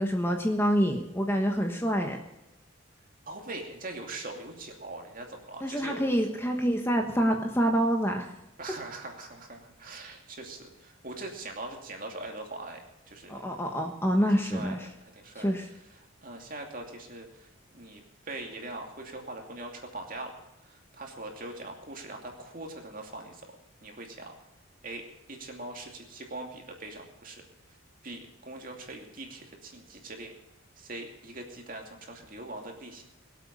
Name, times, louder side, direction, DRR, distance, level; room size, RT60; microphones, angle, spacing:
voice 1, 0.0-2.2 5.6-8.2 13.3-14.8 15.4-15.6, equal, 10° left, 3 dB, 1.2 m, -26 dB
voice 2, 3.3-6.0 8.6-13.4 14.1-20.4 20.6-23.6 23.8-24.4 24.8-27.4 27.7-27.8 28.0-30.3 30.8-33.0, right 2 dB, 40° right, 2 dB, 2.7 m, -42 dB
23.0 x 8.3 x 5.4 m, 0.93 s
head